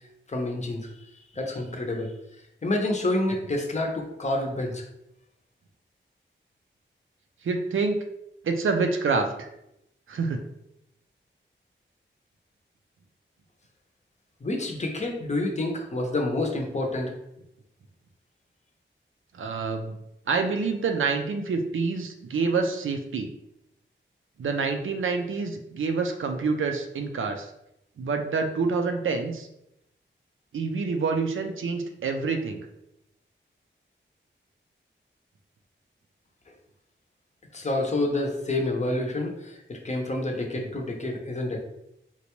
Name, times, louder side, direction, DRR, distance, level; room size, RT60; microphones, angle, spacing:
voice 1, 0.3-0.9 1.3-2.1 2.6-4.8 14.4-17.1 37.5-41.6, left 2 dB, 35° left, 1 dB, 0.6 m, -28 dB
voice 2, 7.4-8.0 8.4-9.5 10.1-10.4 19.3-20.0 20.3-23.3 24.4-27.5 28.0-29.5 30.5-32.7, right 4 dB, 80° right, 5 dB, 0.4 m, -27 dB
3.9 x 2.2 x 2.9 m, 0.83 s
wide cardioid pair, 120°, 20 cm